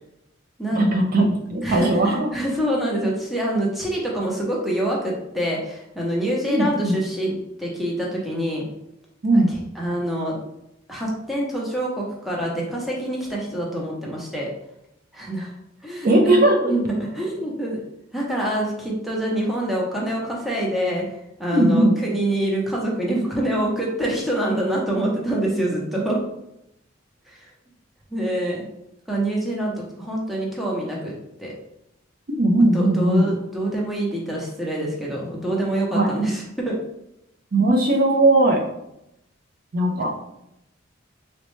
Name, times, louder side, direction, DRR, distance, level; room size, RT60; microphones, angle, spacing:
voice 1, 0.7-2.3 6.5-7.0 9.2-9.5 16.0-16.7 21.5-21.9 32.4-33.3 35.9-36.1 37.5-38.6 39.7-40.1, right 1 dB, 45° right, 1 dB, 0.5 m, -18 dB
voice 2, 1.6-8.7 9.3-10.4 10.9-14.5 15.1-15.5 15.8-17.8 18.1-21.1 21.4-26.2 27.3-27.5 28.1-28.7 29.1-31.5 32.7-36.8 39.9-40.1, right 1 dB, ahead, -4 dB, 0.6 m, -26 dB
3.9 x 2.1 x 3.1 m, 0.83 s
head